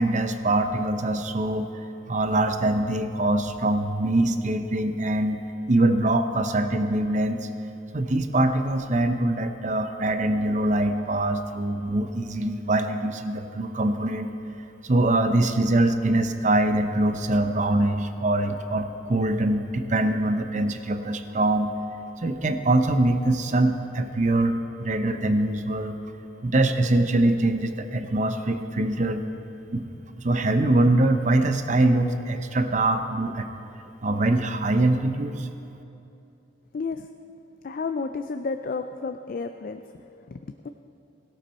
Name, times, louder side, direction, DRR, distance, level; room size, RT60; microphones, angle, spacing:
voice 1, 0.0-1.7 2.1-5.4 5.7-7.5 7.9-14.3 14.8-21.7 22.2-26.0 26.4-29.2 29.7-29.8 30.2-33.5 34.0-35.5, right 2 dB, 40° right, 8 dB, 0.7 m, -23 dB
voice 2, 36.7-37.1 37.6-39.8 40.3-40.7, left 4 dB, 50° left, 8 dB, 0.4 m, -31 dB
16.5 x 12.0 x 4.3 m, 2.8 s
head